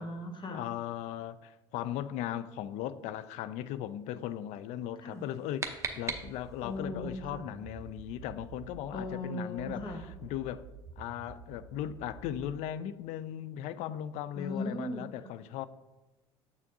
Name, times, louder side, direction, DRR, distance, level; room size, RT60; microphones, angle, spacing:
voice 1, 0.0-0.6 5.0-5.2 6.6-7.4 8.9-10.0 14.3-15.3, left 2 dB, 35° left, 1.2 m, -38 dB
voice 2, 0.5-10.6 11.0-15.7, left 11 dB, 55° left, 0.4 m, -38 dB
sound 1, 5.1-6.8, right 4 dB, 20° right, 0.8 m, -39 dB
sound 2, 6.1-9.2 9.6-12.6, right 6 dB, 50° right, 0.6 m, -49 dB
7.0 x 6.4 x 2.7 m
hypercardioid pair, 65°, 14 cm